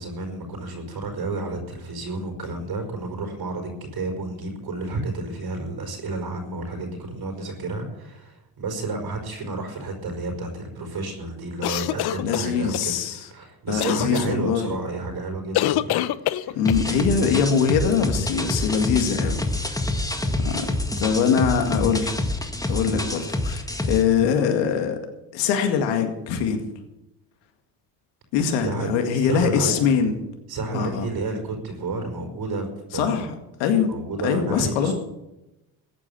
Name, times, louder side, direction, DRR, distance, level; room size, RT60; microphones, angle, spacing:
voice 1, 0.0-16.6 20.2-20.6 28.6-29.7 30.5-32.7 32.9-33.2 33.9-34.9, right 3 dB, 55° right, 3 dB, 5.0 m, -31 dB
sound 1, 11.6-12.9 13.8-14.3 15.5-16.8, left 14 dB, 60° left, 0.8 m, -25 dB
voice 2, 12.2-13.2 13.7-14.7 16.5-19.8 20.4-20.7 21.0-22.1 22.7-25.0 25.3-26.6 28.3-30.1 30.7-31.1 32.9-33.3 33.6-33.9 34.2-34.9, left 6 dB, 90° left, 5 dB, 2.1 m, -22 dB
sound 2, 16.7-24.0, left 2 dB, 10° left, 1.8 m, -27 dB
14.5 x 8.7 x 8.5 m, 0.94 s
supercardioid pair, 80°, 43 cm